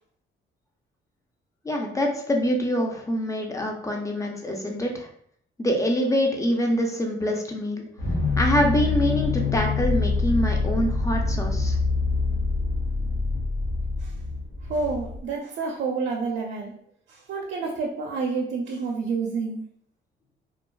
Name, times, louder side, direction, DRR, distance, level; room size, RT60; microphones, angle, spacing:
voice 1, 1.6-5.1 5.6-7.9 8.4-11.8, equal, 15° left, 1 dB, 0.5 m, -25 dB
Cherno Alpha Final, 8.0-15.2, left 4 dB, 85° left, 0.7 m, -25 dB
voice 2, 14.7-16.7 17.1-19.6, right 4 dB, 65° right, -1 dB, 0.5 m, -29 dB
2.4 x 2.3 x 2.2 m, 0.65 s
cardioid pair, 90°, 20 cm